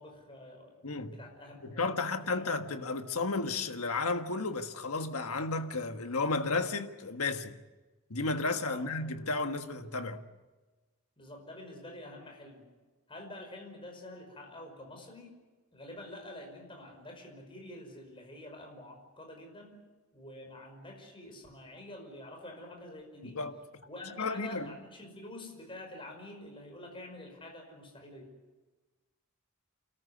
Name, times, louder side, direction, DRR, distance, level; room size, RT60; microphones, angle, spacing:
voice 1, 0.0-0.8 1.1-2.6 8.6-8.9 11.2-12.7 13.1-15.3 15.7-19.8 20.1-23.4 23.9-28.3, left 1 dB, 25° left, 5.4 m, -47 dB
voice 2, 0.8-1.2 1.6-7.5 8.1-10.2 23.2-23.6 24.2-24.7, left 3 dB, 75° left, 1.5 m, -33 dB
29.0 x 13.5 x 9.6 m
head